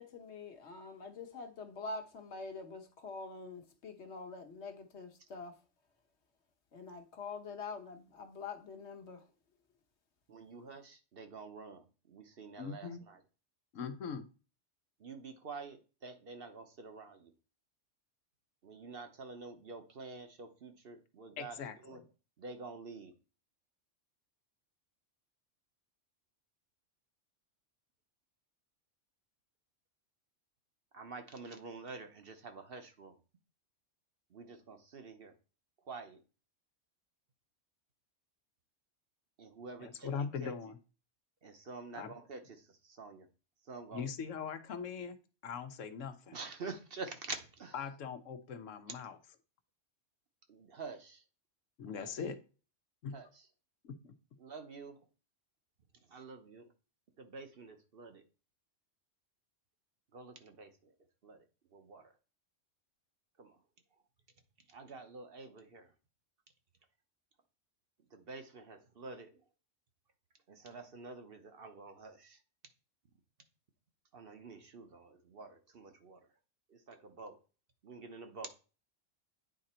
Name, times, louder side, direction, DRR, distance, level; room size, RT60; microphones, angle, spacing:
voice 1, 0.0-5.5 6.7-9.3, left 4 dB, 65° left, 1.3 m, -45 dB
voice 2, 10.3-13.2 15.0-17.3 18.6-22.0 22.4-23.1 30.9-33.1 34.3-35.3 35.9-36.2 39.4-40.1 40.4-40.5 41.4-43.3 43.7-44.1 46.3-47.8 50.5-51.2 52.0-52.2 53.1-53.4 54.4-55.0 56.1-56.7 57.2-58.2 60.1-60.9 61.2-61.4 61.7-62.1 63.4-63.6 64.7-65.9 68.1-69.4 70.5-72.4 74.1-76.3 76.7-77.4 77.8-78.5, right 4 dB, 50° right, 1.0 m, -48 dB
voice 3, 12.6-13.0 13.7-14.3 21.4-22.0 39.8-40.8 42.0-42.1 43.9-45.2 45.4-46.4 47.7-49.2 51.8-52.4 53.0-53.2 53.8-54.1, left 6 dB, 85° left, 1.2 m, -41 dB
9.1 x 3.8 x 4.3 m
omnidirectional pair, 1.3 m